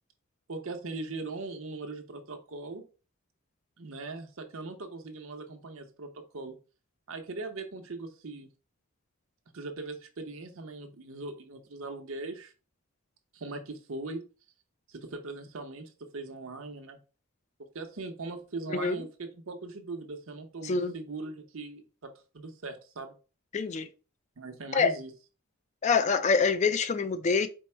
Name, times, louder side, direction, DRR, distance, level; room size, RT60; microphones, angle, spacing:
voice 1, 0.5-2.8 3.8-6.6 7.1-8.5 9.5-12.5 13.3-14.2 14.9-17.0 17.7-23.1 24.4-25.1, right 3 dB, 65° right, 0.8 m, -40 dB
voice 2, 20.6-20.9 23.5-23.9 24.7-24.9 25.8-27.5, left 5 dB, 30° left, 0.3 m, -25 dB
4.5 x 2.1 x 4.4 m
head